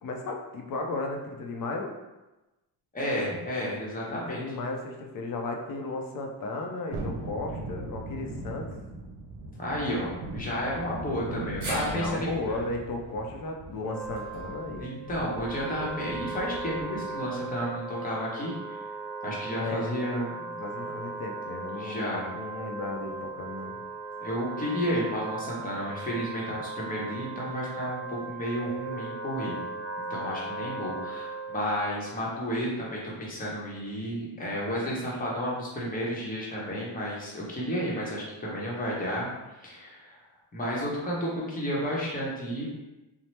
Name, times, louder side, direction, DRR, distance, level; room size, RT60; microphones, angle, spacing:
voice 1, 0.0-1.9 4.1-8.7 11.9-14.9 19.6-20.0 20.6-23.7, left 2 dB, 55° left, 2 dB, 0.5 m, -35 dB
voice 2, 2.9-4.4 9.6-12.5 14.8-18.8 19.2-20.7 21.8-22.3 24.2-29.6 30.0-39.3 39.6-40.2 40.5-42.6, equal, 20° left, -5 dB, 0.8 m, -32 dB
Thunderstorm, 6.9-17.1 17.5-17.6, right 2 dB, 85° right, 0.6 m, -40 dB
sound 1, 11.6-15.9 16.2-16.3 17.5-17.6, right 1 dB, 45° right, 0.9 m, -42 dB
Wind instrument woodwind instrument, 13.7-31.9, right 3 dB, ahead, 1.0 m, -38 dB
2.9 x 2.0 x 3.2 m, 1.1 s
cardioid pair, 120°, 41 cm